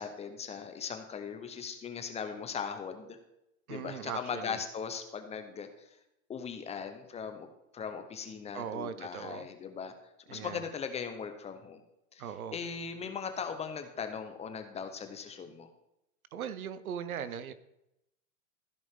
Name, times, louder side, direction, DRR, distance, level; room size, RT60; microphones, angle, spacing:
voice 1, 0.0-3.2 3.7-5.7 6.3-7.5 7.7-9.9 10.3-11.8 12.1-15.7, left 6 dB, 15° left, 8 dB, 0.8 m, -39 dB
voice 2, 3.7-4.6 8.5-9.5 10.3-10.6 12.2-12.6 16.3-17.5, right 8 dB, 85° right, 14 dB, 0.8 m, -39 dB
15.0 x 5.3 x 3.6 m, 0.86 s
hypercardioid pair, 125°, 42 cm